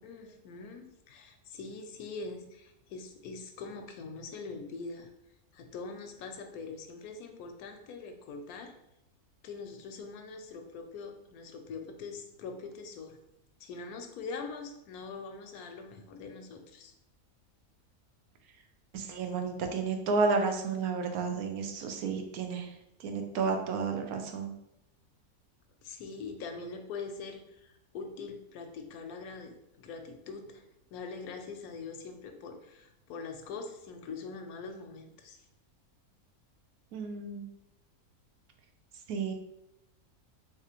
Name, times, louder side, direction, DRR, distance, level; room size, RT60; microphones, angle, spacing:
voice 1, 0.0-5.1 5.5-8.8 9.4-13.2 13.6-16.9 25.8-30.6 30.9-35.4, left 4 dB, 85° left, 6 dB, 1.1 m, -43 dB
voice 2, 18.9-24.5 36.9-37.5 39.1-39.3, right 4 dB, 90° right, 4 dB, 1.1 m, -32 dB
3.5 x 3.3 x 2.9 m, 0.85 s
omnidirectional pair, 1.5 m